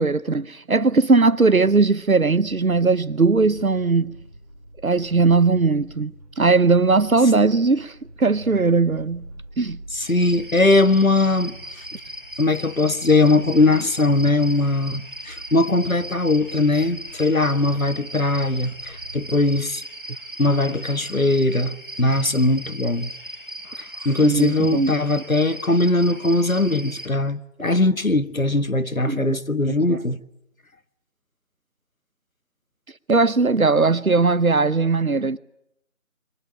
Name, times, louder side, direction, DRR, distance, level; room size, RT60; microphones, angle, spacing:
voice 1, 0.0-4.2 4.8-9.2 9.6-9.8 24.2-24.9 29.0-29.4 29.9-30.0 33.1-35.4, right 3 dB, 80° right, 1.0 m, -19 dB
sound 1, 0.9-19.5, right 1 dB, 25° left, 5.3 m, -44 dB
voice 2, 9.9-11.8 12.4-19.8 20.4-23.1 23.8-30.2, left 2 dB, 75° left, 1.6 m, -20 dB
sound 2, 10.0-27.1, right 1 dB, 40° right, 4.1 m, -38 dB
28.0 x 23.0 x 8.8 m
figure-of-eight pair, 180°, 41 cm